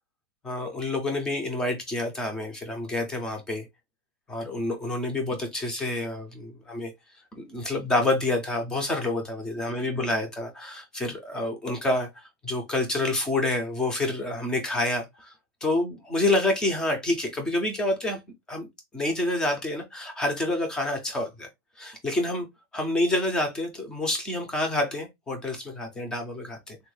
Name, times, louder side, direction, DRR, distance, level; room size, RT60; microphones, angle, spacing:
voice 1, 0.4-3.7 4.3-6.9 7.3-12.1 12.4-15.3 15.6-18.2 18.5-18.7 18.9-21.5 21.8-22.5 22.7-26.8, left 2 dB, 5° left, 0.3 m, -28 dB
3.4 x 2.2 x 3.0 m
supercardioid pair, 175°, 13 cm